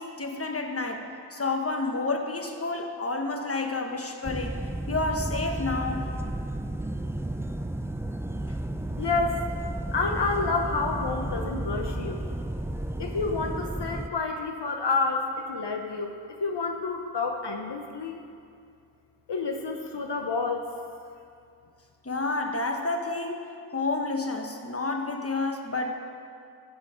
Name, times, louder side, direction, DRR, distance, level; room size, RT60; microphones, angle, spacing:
voice 1, 0.0-4.6 4.9-6.1 22.0-25.9, left 3 dB, 35° left, 4 dB, 1.2 m, -30 dB
sound 1, 4.2-14.1, right 1 dB, 5° right, 0.4 m, -33 dB
voice 2, 9.0-9.4 9.9-12.2 13.0-18.2 19.3-20.6, left 4 dB, 75° left, 3 dB, 0.9 m, -29 dB
15.5 x 6.4 x 5.0 m, 2.3 s
wide cardioid pair, 40°, 42 cm